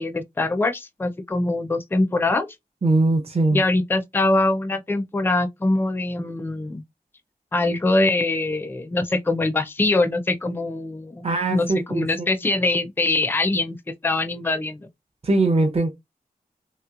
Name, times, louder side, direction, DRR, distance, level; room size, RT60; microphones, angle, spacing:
voice 1, 0.0-2.5 3.5-6.8 7.5-13.8 14.0-14.9, left 2 dB, 15° left, 0.4 m, -23 dB
voice 2, 2.8-3.6 11.2-12.1 15.2-15.9, right 2 dB, 40° right, 0.6 m, -21 dB
3.1 x 2.9 x 2.3 m
wide cardioid pair, 125°, 16 cm